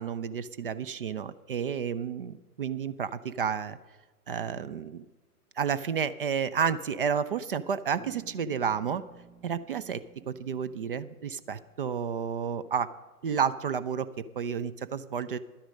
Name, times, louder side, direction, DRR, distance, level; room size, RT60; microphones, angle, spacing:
voice 1, 0.0-3.8 4.3-5.1 5.6-9.0 9.4-12.9 13.2-15.4, right 7 dB, 40° right, 15 dB, 0.4 m, -31 dB
Bass guitar, 8.0-12.0, right 5 dB, 80° right, 1.4 m, -54 dB
11.5 x 10.0 x 5.2 m, 1.2 s
figure-of-eight pair, 120°, 46 cm